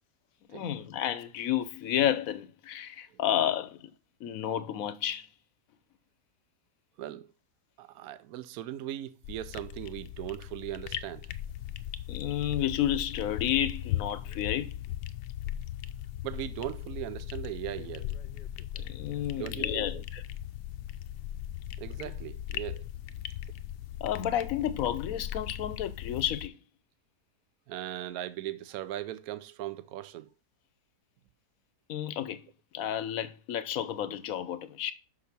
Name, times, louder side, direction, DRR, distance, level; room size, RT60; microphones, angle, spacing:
voice 1, 0.5-3.9 4.2-5.3 12.1-14.8 18.8-20.2 24.0-26.5 31.9-32.4 32.7-34.9, left 11 dB, 65° left, 1.1 m, -31 dB
voice 2, 7.8-11.3 16.2-18.2 19.3-20.0 21.8-22.9 27.7-30.3, right 13 dB, 70° right, 1.0 m, -39 dB
sound 1, 9.2-26.5, left 12 dB, 85° left, 1.2 m, -38 dB
6.4 x 5.8 x 6.0 m
omnidirectional pair, 1.8 m